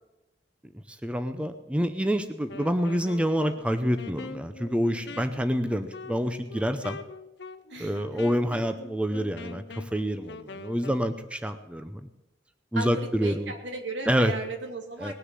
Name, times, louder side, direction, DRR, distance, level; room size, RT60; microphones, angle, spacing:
voice 1, 0.9-7.0 7.8-12.0 12.7-13.5 14.1-14.3 15.0-15.1, equal, 5° right, 9 dB, 0.6 m, -27 dB
Wind instrument woodwind instrument, 2.4-11.1, left 3 dB, 70° left, 0.6 m, -44 dB
voice 2, 7.7-8.2 12.7-15.1, right 2 dB, 80° right, 3 dB, 2.4 m, -36 dB
19.5 x 6.7 x 7.5 m, 0.96 s
head